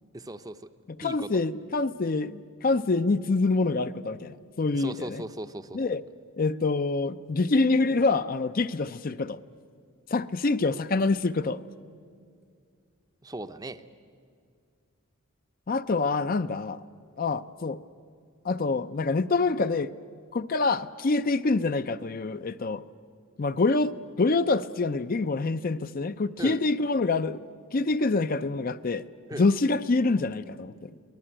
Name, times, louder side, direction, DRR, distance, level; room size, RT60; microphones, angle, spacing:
voice 1, 0.1-0.6 1.0-1.3 4.7-5.8 13.2-13.8 26.4-26.6 29.3-29.5, right 1 dB, 20° right, 0.6 m, -37 dB
voice 2, 0.9-5.2 5.7-6.0 6.4-9.4 10.1-11.6 15.7-16.8 17.2-17.8 18.4-19.9 20.3-22.8 23.4-29.0 29.4-30.9, left 3 dB, 45° left, 0.5 m, -26 dB
23.5 x 19.0 x 8.9 m
head